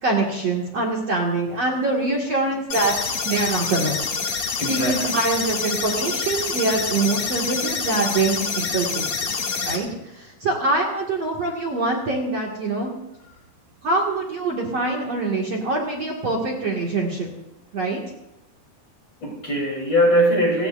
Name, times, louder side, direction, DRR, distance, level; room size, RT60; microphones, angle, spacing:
voice 1, 0.0-4.1 4.7-9.3 9.6-12.9 13.8-17.3 17.7-18.0, right 2 dB, 45° right, -2 dB, 2.7 m, -24 dB
sound 1, 2.7-9.8, left 5 dB, 45° left, 3.2 m, -27 dB
voice 2, 4.5-5.1 19.2-20.7, equal, 30° left, 1 dB, 4.0 m, -21 dB
30.0 x 17.0 x 2.6 m, 0.90 s
omnidirectional pair, 4.8 m